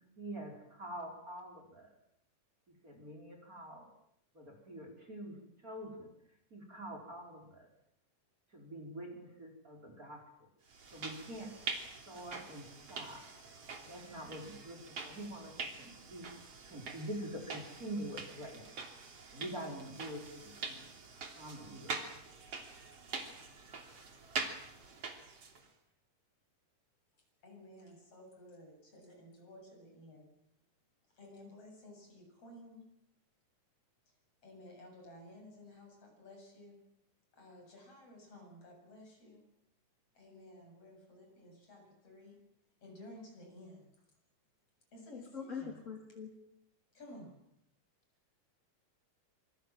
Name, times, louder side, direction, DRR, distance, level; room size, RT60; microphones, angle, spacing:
voice 1, 0.2-1.9 2.8-3.9 4.3-5.4 5.6-6.1 6.5-7.7 8.5-10.5 10.9-11.6 12.1-13.3 13.8-18.6 19.3-20.9 21.4-22.4, right 1 dB, 25° right, 3 dB, 4.8 m, -46 dB
sound 1, 10.7-25.7, right 4 dB, 50° right, 4.0 m, -45 dB
voice 2, 27.2-30.3 31.1-32.8 34.1-34.2 34.4-36.8 37.3-39.5 40.1-42.4 42.8-43.9 44.9-45.8 46.9-47.4, left 1 dB, 45° left, 3 dB, 8.8 m, -54 dB
voice 3, 45.1-46.3, left 6 dB, 25° left, 1 dB, 3.5 m, -43 dB
26.5 x 25.0 x 7.6 m, 0.78 s
omnidirectional pair, 3.7 m